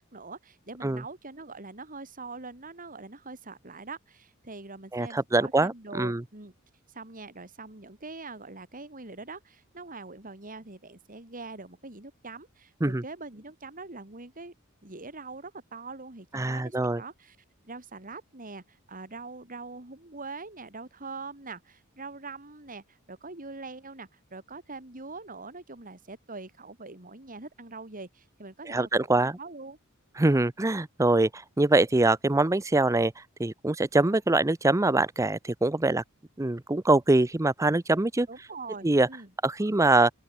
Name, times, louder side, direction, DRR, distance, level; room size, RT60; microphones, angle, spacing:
voice 1, 0.0-6.5 6.9-14.5 14.8-17.4 17.6-29.8 38.3-39.3, right 3 dB, 40° right, 3.5 m, -43 dB
voice 2, 4.9-6.2 12.8-13.0 16.3-17.0 28.7-29.4 30.2-33.1 33.4-36.0 36.4-38.3 38.8-39.1 39.4-40.1, right 2 dB, 15° right, 0.6 m, -24 dB
open air
head